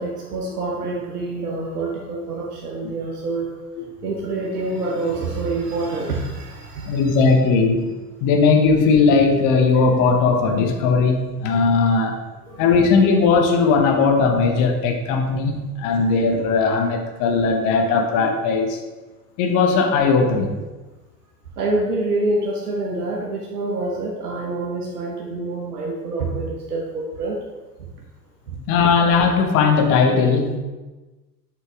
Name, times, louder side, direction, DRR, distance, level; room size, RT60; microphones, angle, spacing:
voice 1, 0.0-3.5 4.0-7.2 21.6-27.4, right 2 dB, 70° right, -3 dB, 1.3 m, -26 dB
voice 2, 6.9-12.2 12.6-18.8 19.4-20.6 28.5-30.6, left 4 dB, 40° left, 4 dB, 1.2 m, -18 dB
8.0 x 5.8 x 3.6 m, 1.2 s
figure-of-eight pair, 80°, 48 cm